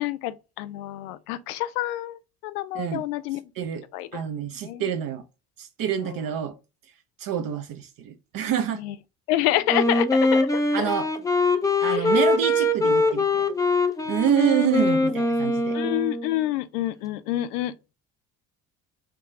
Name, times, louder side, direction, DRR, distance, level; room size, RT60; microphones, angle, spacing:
voice 1, 0.0-3.4 3.9-4.2 4.6-4.9 6.0-6.2 8.8-8.9 9.3-10.9 11.9-12.1 15.7-17.7, left 14 dB, 70° left, 0.5 m, -28 dB
voice 2, 3.6-3.9 4.1-5.2 5.6-6.5 7.2-8.8 10.7-11.1 11.8-13.5 14.1-15.8, right 9 dB, 45° right, 0.6 m, -27 dB
Wind instrument woodwind instrument, 9.7-16.3, left 2 dB, 10° left, 0.5 m, -23 dB
3.7 x 2.4 x 4.1 m
hypercardioid pair, 55°, 47 cm